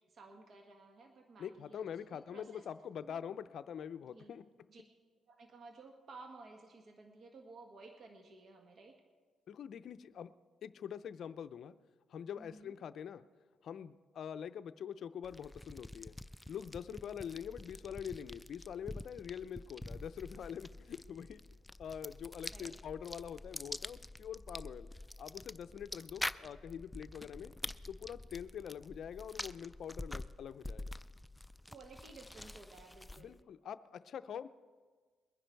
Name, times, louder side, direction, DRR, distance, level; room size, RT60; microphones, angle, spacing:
voice 1, 0.1-2.6 3.0-3.2 4.1-4.8 5.3-9.0 12.4-12.7 16.9-17.0 22.5-22.7 31.7-33.4, right 3 dB, 55° right, 3 dB, 1.4 m, -55 dB
voice 2, 1.4-4.4 9.5-10.3 10.6-11.7 12.1-13.3 13.6-16.2 16.5-21.4 21.8-24.9 25.2-27.5 27.9-30.9 33.2-34.5, left 8 dB, 65° left, 13 dB, 0.5 m, -44 dB
sound 1, 15.2-33.4, left 1 dB, 5° left, 0.4 m, -47 dB
22.0 x 9.8 x 4.6 m, 1.5 s
cardioid pair, 90°, 0 cm